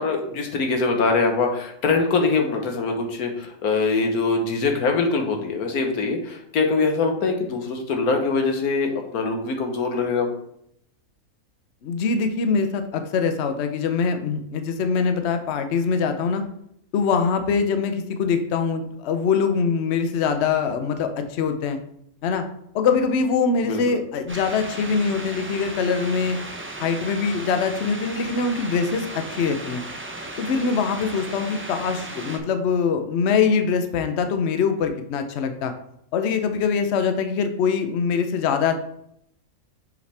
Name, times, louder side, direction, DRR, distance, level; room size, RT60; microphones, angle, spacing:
voice 1, 0.0-10.3 23.6-23.8, left 4 dB, 90° left, 3 dB, 1.6 m, -23 dB
voice 2, 11.8-16.4 16.9-21.8 22.2-22.4 22.7-26.4 26.8-29.8 30.4-35.7 36.1-38.7, left 5 dB, 60° left, 7 dB, 0.9 m, -23 dB
sound 1, 24.3-32.4, right 2 dB, 15° right, 0.4 m, -36 dB
6.5 x 5.4 x 3.4 m, 0.72 s
omnidirectional pair, 1.5 m